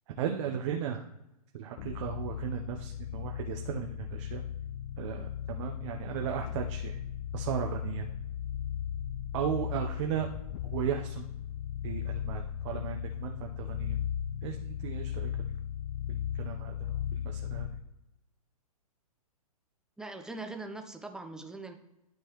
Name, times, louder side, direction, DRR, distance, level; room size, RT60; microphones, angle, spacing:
voice 1, 0.2-1.1 1.5-4.4 5.0-7.0 7.3-8.0 9.3-10.3 10.7-11.3 11.8-14.0 14.4-15.3 16.1-16.9 17.2-17.7, right 9 dB, 50° right, 2 dB, 0.8 m, -35 dB
sound 1, 1.8-17.9, left 10 dB, 35° left, 0.4 m, -36 dB
voice 2, 20.0-21.7, right 2 dB, 5° right, 5 dB, 0.7 m, -41 dB
12.0 x 4.6 x 3.1 m, 0.90 s
hypercardioid pair, 125°, 19 cm